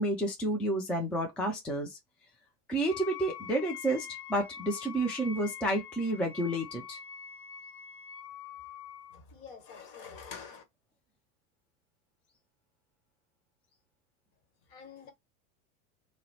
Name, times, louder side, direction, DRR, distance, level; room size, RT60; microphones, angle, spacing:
voice 1, 0.0-2.0 2.7-7.0, right 1 dB, 5° left, 0.3 m, -30 dB
Wind instrument woodwind instrument, 2.9-9.2, left 8 dB, 90° left, 0.7 m, -45 dB
voice 2, 9.1-10.6 14.7-15.1, left 6 dB, 50° left, 1.3 m, -47 dB
2.7 x 2.0 x 4.0 m
hypercardioid pair, 90°, 45 cm